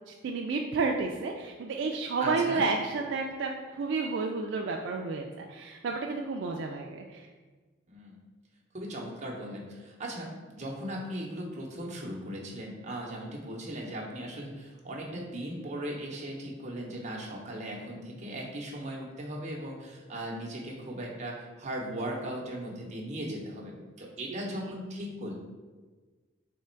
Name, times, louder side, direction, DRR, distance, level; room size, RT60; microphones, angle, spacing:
voice 1, 0.1-7.3 24.3-24.4, right 4 dB, 65° right, 1 dB, 0.3 m, -31 dB
voice 2, 2.2-2.7 7.9-8.2 8.7-25.3, right 1 dB, 35° right, -1 dB, 0.8 m, -38 dB
3.5 x 3.3 x 4.4 m, 1.4 s
head